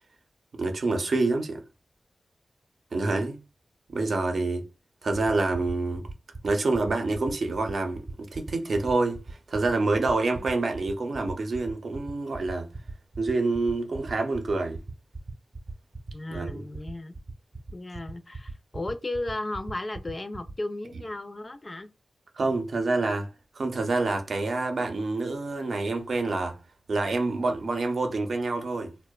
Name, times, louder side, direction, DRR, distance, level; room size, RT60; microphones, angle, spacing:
voice 1, 0.6-1.6 2.9-3.4 3.9-4.6 5.0-6.0 6.4-12.7 13.2-14.8 16.3-16.6 22.4-23.3 23.6-26.6 26.9-28.9, right 3 dB, 70° right, 0.6 m, -27 dB
sound 1, 5.1-20.5, right 3 dB, 35° right, 0.7 m, -39 dB
voice 2, 16.1-17.2 17.7-21.9, left 2 dB, 35° left, 0.3 m, -35 dB
2.7 x 2.1 x 2.2 m
wide cardioid pair, 80°, 0 cm